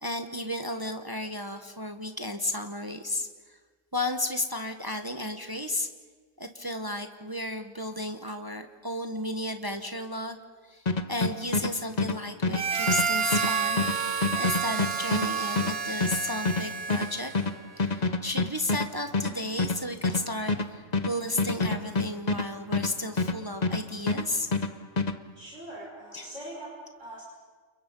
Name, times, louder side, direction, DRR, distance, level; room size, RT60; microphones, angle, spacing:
voice 1, 0.0-3.6 3.9-5.9 6.4-10.4 10.6-17.3 17.8-24.5 26.1-26.3, left 1 dB, 20° right, 6 dB, 1.3 m, -33 dB
sound 1, 10.9-23.8 24.1-25.2, left 3 dB, 35° left, 1.1 m, -28 dB
Harmonica, 12.5-17.5, right 6 dB, 50° right, 1.3 m, -30 dB
voice 2, 25.4-26.7 27.0-27.2, right 1 dB, 70° right, -4 dB, 6.0 m, -42 dB
30.0 x 28.5 x 5.5 m, 1.4 s
omnidirectional pair, 1.3 m